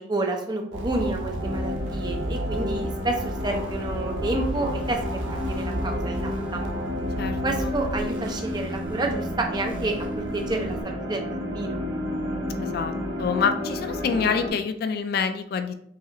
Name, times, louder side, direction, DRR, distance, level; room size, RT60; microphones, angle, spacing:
voice 1, 0.0-6.7 7.4-11.8, right 2 dB, 25° right, 3 dB, 0.6 m, -29 dB
sound 1, 0.7-10.8, right 1 dB, 90° right, 0.7 m, -32 dB
sound 2, 1.4-14.5, left 1 dB, 70° right, 1.3 m, -32 dB
sound 3, 4.2-7.1, equal, 25° left, 0.7 m, -41 dB
voice 2, 7.2-7.8 12.6-12.9 13.2-15.7, left 6 dB, 55° left, 8 dB, 0.3 m, -27 dB
5.6 x 2.4 x 2.9 m, 0.69 s
head